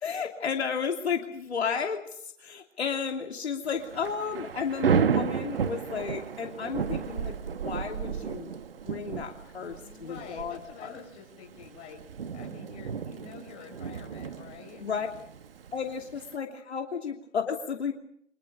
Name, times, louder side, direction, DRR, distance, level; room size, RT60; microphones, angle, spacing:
voice 1, 0.0-8.5 8.8-10.9 14.8-15.1 15.7-17.9, left 6 dB, 60° left, 3 dB, 3.0 m, -33 dB
Thunder / Rain, 3.7-16.4, right 7 dB, 50° right, 1.5 m, -33 dB
voice 2, 9.8-12.0 12.3-14.9, left 7 dB, 20° left, 0 dB, 6.3 m, -47 dB
25.5 x 23.0 x 6.5 m, 0.68 s
hypercardioid pair, 155°, 36 cm